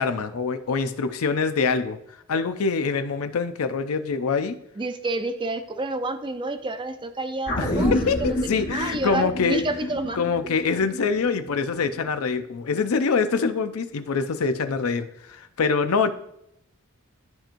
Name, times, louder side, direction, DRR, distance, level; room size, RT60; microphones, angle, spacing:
voice 1, 0.0-2.0 2.3-4.6 7.6-9.7 10.1-16.1, left 5 dB, 80° left, 10 dB, 0.5 m, -25 dB
voice 2, 4.8-7.9 8.2-10.2, right 2 dB, 20° right, 7 dB, 0.6 m, -29 dB
sound 1, 7.5-12.1 12.4-12.5, left 1 dB, 45° left, 1.5 m, -29 dB
12.5 x 4.4 x 2.6 m, 0.77 s
head